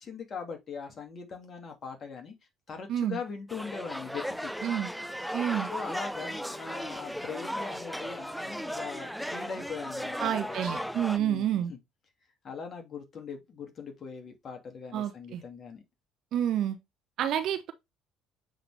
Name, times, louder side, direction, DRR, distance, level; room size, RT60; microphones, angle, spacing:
voice 1, 0.0-2.3 2.7-4.5 5.7-10.6 11.2-11.8 12.4-15.8, left 6 dB, 45° left, 2.4 m, -41 dB
sound 1, 3.5-11.2, equal, ahead, 0.5 m, -36 dB
voice 2, 5.3-5.7 10.2-11.7 14.9-15.4 16.3-16.8 17.2-17.7, right 10 dB, 60° right, 0.9 m, -29 dB
7.5 x 3.9 x 3.4 m
hypercardioid pair, 65°, 0 cm